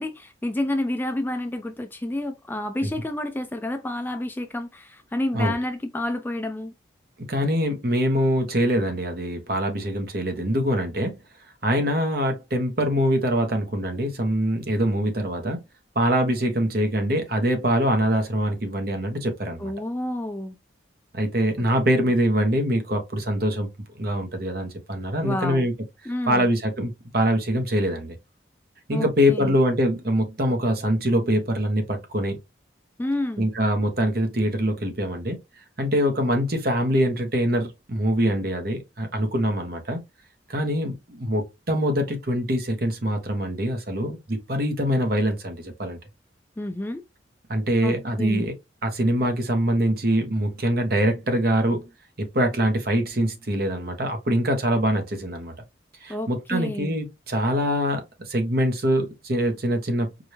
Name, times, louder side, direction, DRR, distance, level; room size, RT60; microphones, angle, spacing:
voice 1, 0.0-6.7 19.6-20.6 21.6-21.7 25.2-25.7 26.1-26.5 28.9-29.6 33.0-33.5 46.6-47.0 47.8-48.5 56.1-57.0, left 1 dB, 10° left, 0.3 m, -29 dB
voice 2, 7.3-11.2 11.6-15.6 15.9-19.7 21.1-23.7 24.0-25.7 26.3-28.2 28.9-32.4 33.4-35.4 35.8-40.0 40.5-46.0 47.5-48.5 48.8-51.8 52.2-55.5 56.0-60.1, equal, 50° right, 1.1 m, -24 dB
4.9 x 2.6 x 2.9 m
head